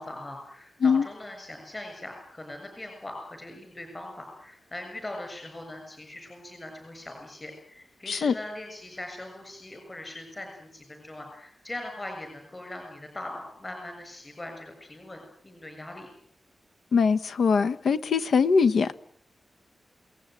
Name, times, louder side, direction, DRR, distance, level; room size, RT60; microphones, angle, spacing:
voice 1, 0.0-16.1, left 1 dB, 20° left, 4 dB, 6.9 m, -41 dB
voice 2, 16.9-18.9, left 5 dB, 75° left, 13 dB, 1.4 m, -22 dB
28.0 x 19.0 x 9.2 m, 0.65 s
wide cardioid pair, 150°, 0 cm